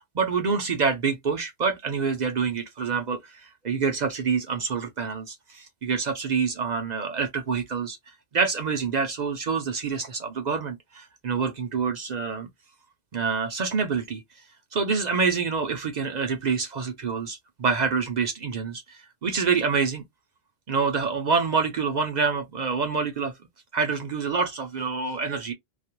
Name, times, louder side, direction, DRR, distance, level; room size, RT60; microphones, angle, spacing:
voice 1, 0.0-8.0 8.3-12.5 13.1-14.2 14.7-20.0 20.7-23.3 23.7-25.5, right 5 dB, 55° right, 0.6 m, -27 dB
2.4 x 2.0 x 2.8 m
omnidirectional pair, 1.0 m